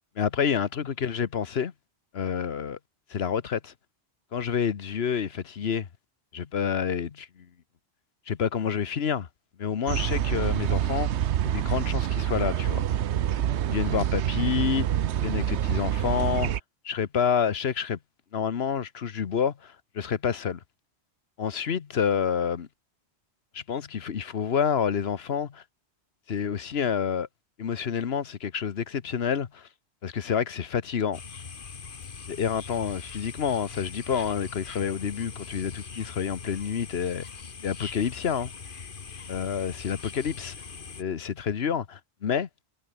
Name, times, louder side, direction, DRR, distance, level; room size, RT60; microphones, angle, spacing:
voice 1, 0.2-1.7 2.1-2.8 3.1-3.7 4.3-5.9 6.3-7.5 8.3-9.3 9.6-11.2 11.4-12.8 13.7-14.9 15.2-16.5 16.8-18.0 18.3-20.6 21.4-22.7 23.5-25.6 26.3-27.3 27.6-29.7 30.0-31.2 32.3-37.3 37.6-38.5 39.3-40.5 41.0-42.5, left 7 dB, 70° left, 1.3 m, -28 dB
sound 1, 9.9-16.6, right 10 dB, 90° right, 1.0 m, -26 dB
sound 2, 31.1-41.0, left 5 dB, 50° left, 1.4 m, -41 dB
omnidirectional pair, 1.1 m